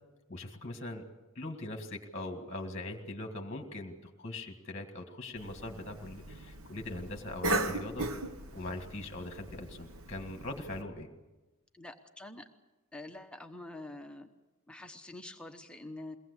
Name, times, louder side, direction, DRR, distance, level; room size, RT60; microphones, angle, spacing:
voice 1, 0.3-1.0 1.4-8.1 8.5-11.1, left 2 dB, 30° left, 4 dB, 1.9 m, -41 dB
Cough, 5.4-10.8, right 2 dB, 70° right, 1.2 m, -38 dB
voice 2, 11.7-12.5 12.9-14.3 14.7-16.2, left 2 dB, 5° left, 4 dB, 1.0 m, -46 dB
22.5 x 18.5 x 8.2 m, 1.1 s
head